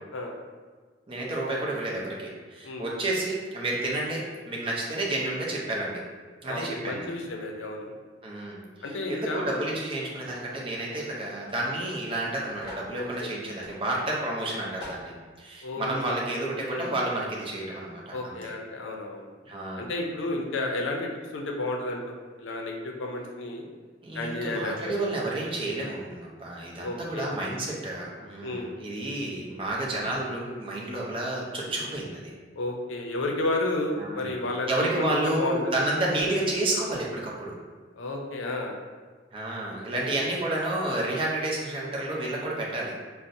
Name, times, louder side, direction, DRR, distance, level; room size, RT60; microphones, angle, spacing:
voice 1, 1.1-6.0 6.4-7.1 8.2-15.1 15.4-18.5 19.5-19.9 24.0-32.3 34.0-34.4 34.7-37.5 39.3-43.0, right 2 dB, 30° right, -3 dB, 0.5 m, -30 dB
voice 2, 6.5-7.9 8.8-9.6 12.9-13.4 14.2-14.4 15.6-16.2 16.7-16.9 18.1-19.3 19.8-23.6 24.1-24.9 26.8-27.3 28.4-28.7 31.8-31.9 32.5-35.6 36.1-36.2 38.0-38.7 40.1-40.2, left 2 dB, 85° left, 1 dB, 0.5 m, -32 dB
sound 1, 10.2-10.5 11.4-11.6 11.8-11.9 12.6-12.9 13.6-13.8 14.3-14.4 14.8-15.1, equal, 25° left, 0.9 m, -44 dB
3.9 x 2.0 x 2.6 m, 1.5 s
head